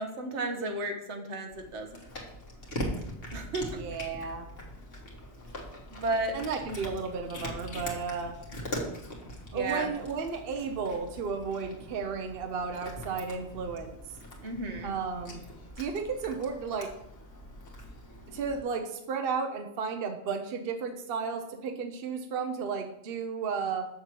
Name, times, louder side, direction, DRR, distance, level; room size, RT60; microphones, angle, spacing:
voice 1, 0.0-2.1 3.3-3.8 5.9-6.3 9.5-9.9 14.4-14.9, right 2 dB, 80° right, 5 dB, 1.4 m, -33 dB
Cat, 1.5-18.6, equal, 55° left, 1.8 m, -42 dB
voice 2, 3.7-4.5 6.3-8.4 9.5-14.0 14.8-15.4 15.8-16.9 18.3-23.9, right 5 dB, 60° right, 6 dB, 0.9 m, -33 dB
7.2 x 6.6 x 4.6 m, 0.80 s
omnidirectional pair, 1.2 m